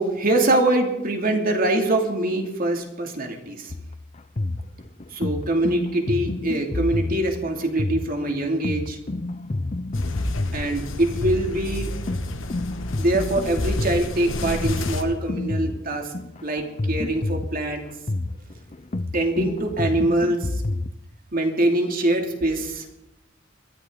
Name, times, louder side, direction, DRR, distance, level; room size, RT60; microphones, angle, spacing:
voice 1, 0.0-3.7 5.1-9.0 10.5-11.9 13.0-16.1 16.4-17.8 19.1-20.6 21.3-22.9, right 1 dB, 45° right, 3 dB, 2.7 m, -23 dB
sound 1, 3.7-20.9, left 2 dB, 35° left, 0.6 m, -29 dB
sound 2, 9.9-15.0, left 1 dB, 85° left, 1.6 m, -31 dB
22.0 x 14.0 x 4.0 m, 0.87 s
head